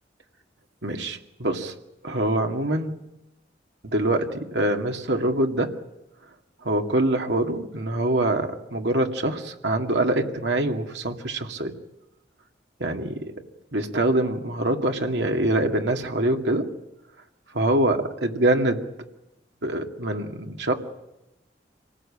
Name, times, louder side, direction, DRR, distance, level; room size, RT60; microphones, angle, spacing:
voice 1, 0.8-1.7 2.0-2.9 3.8-5.7 6.6-11.7 12.8-13.2 13.7-16.6 17.5-18.9 19.6-20.7, right 1 dB, 85° right, 4 dB, 2.3 m, -24 dB
26.5 x 19.0 x 8.7 m, 0.94 s
head